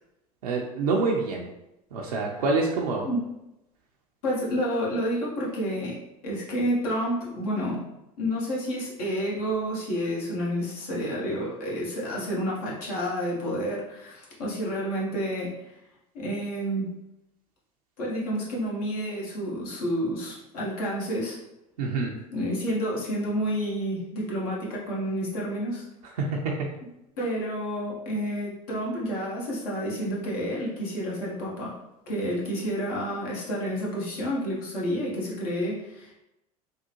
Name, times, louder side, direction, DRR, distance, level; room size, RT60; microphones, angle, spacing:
voice 1, 0.4-1.5 1.9-3.1 21.8-22.1 26.2-26.6, right 3 dB, 80° right, -2 dB, 0.5 m, -26 dB
voice 2, 4.2-6.0 6.2-7.9 8.2-15.7 16.1-16.9 18.0-21.4 22.3-25.8 27.2-31.8 32.1-36.1, equal, 75° left, -4 dB, 1.2 m, -29 dB
3.5 x 2.1 x 2.9 m, 0.91 s
hypercardioid pair, 75°, 19 cm